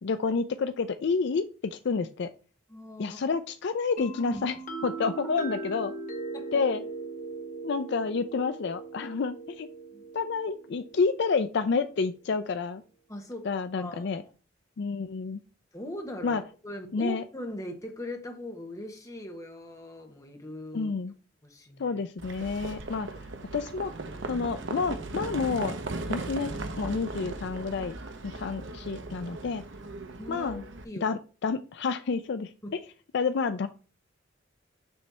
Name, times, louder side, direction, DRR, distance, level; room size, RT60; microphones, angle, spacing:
voice 1, 0.0-2.3 3.0-4.5 4.8-5.9 6.5-6.8 7.6-9.7 10.1-12.8 13.5-14.2 14.8-15.4 16.2-16.4 16.9-17.2 20.7-21.1 21.8-23.1 23.5-23.9 24.3-25.7 26.1-28.0 28.2-29.6 30.3-30.6 31.0-32.5 33.1-33.7, left 4 dB, 60° left, 10 dB, 0.4 m, -29 dB
voice 2, 2.7-3.2 4.2-4.4 6.3-6.6 9.9-10.1 13.1-14.3 15.7-20.9 21.4-22.0 22.6-22.7 24.2-24.5 30.2-31.0, left 1 dB, 15° left, 4 dB, 1.2 m, -40 dB
sound 1, 4.0-11.6, right 3 dB, 40° left, 1.4 m, -39 dB
Livestock farm animals working animals, 22.2-30.8, right 2 dB, 65° right, 0.9 m, -37 dB
7.0 x 3.2 x 6.0 m, 0.36 s
head